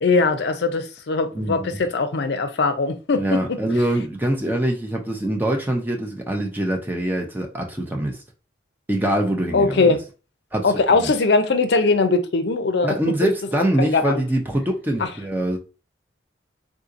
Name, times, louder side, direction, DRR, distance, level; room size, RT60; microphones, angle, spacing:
voice 1, 0.0-3.6 9.5-10.0 10.6-12.9 13.2-13.3 13.8-14.2 15.0-15.1, left 3 dB, 65° left, 0.5 m, -20 dB
voice 2, 1.3-1.7 3.2-8.2 8.9-10.0 10.5-11.1 12.8-15.6, right 1 dB, 10° right, 0.5 m, -24 dB
3.7 x 2.8 x 2.4 m
head